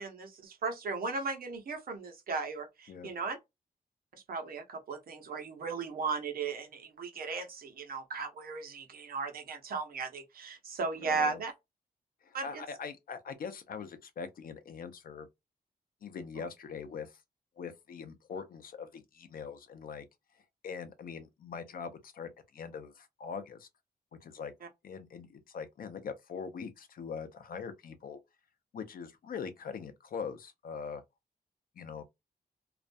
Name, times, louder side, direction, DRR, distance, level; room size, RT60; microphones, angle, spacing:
voice 1, 0.0-3.4 4.3-11.5 12.3-12.6 16.4-16.5, right 4 dB, 75° right, 0.8 m, -36 dB
voice 2, 11.0-11.4 12.2-15.3 16.0-17.2 17.6-20.0 20.6-23.7 24.2-24.5 24.8-28.2 28.7-31.0 31.8-32.0, left 6 dB, 70° left, 0.6 m, -42 dB
2.4 x 2.1 x 2.5 m
wide cardioid pair, 125°, 15 cm